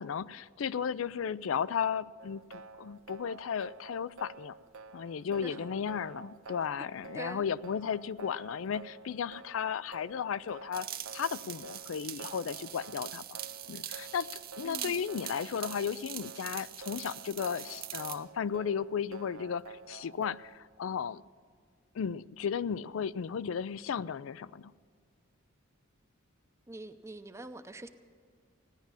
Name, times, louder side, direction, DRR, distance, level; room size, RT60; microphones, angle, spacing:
voice 1, 0.0-4.6 4.9-10.9 11.1-13.2 13.7-14.3 14.6-21.2 21.9-24.7, left 7 dB, 75° left, 19 dB, 0.4 m, -34 dB
sound 1, 2.2-20.6, right 4 dB, 90° right, 0.6 m, -50 dB
sound 2, 10.7-18.2, right 12 dB, 50° right, 0.8 m, -43 dB
voice 2, 14.6-15.0 26.7-27.9, right 1 dB, 15° right, 8 dB, 0.6 m, -44 dB
16.5 x 10.5 x 7.2 m, 2.1 s
head